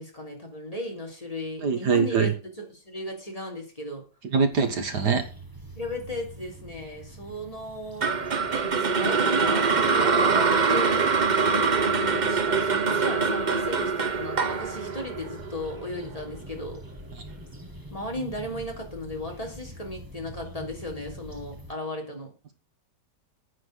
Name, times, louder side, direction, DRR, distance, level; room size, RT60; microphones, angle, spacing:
voice 1, 0.0-2.3 2.6-4.0 5.7-8.2 8.5-11.1 12.0-16.8 17.9-22.3, left 1 dB, 20° left, 0 dB, 3.4 m, -35 dB
voice 2, 1.6-2.3 4.3-5.3 17.2-17.3, right 5 dB, 70° right, 8 dB, 2.1 m, -23 dB
sound 1, 4.5-21.7, right 1 dB, 15° right, 1.5 m, -45 dB
sound 2, 8.0-16.2, right 5 dB, 40° right, 0.6 m, -24 dB
9.7 x 9.5 x 6.4 m, 0.35 s
omnidirectional pair, 1.8 m